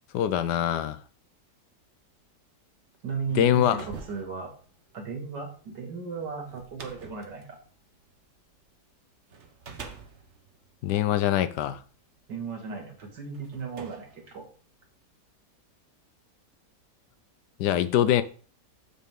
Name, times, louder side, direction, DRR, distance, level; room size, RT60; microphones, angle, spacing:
voice 1, 0.1-1.0 3.3-3.8 10.8-11.8 17.6-18.2, left 11 dB, 75° left, 1.3 m, -23 dB
voice 2, 3.0-4.5 4.9-7.6 12.3-14.4, right 5 dB, 85° right, 2.7 m, -36 dB
sound 1, 3.3-8.7 9.3-11.8 12.6-12.7 13.3-15.0, right 5 dB, 45° right, 1.3 m, -46 dB
8.4 x 7.3 x 3.7 m
omnidirectional pair, 1.8 m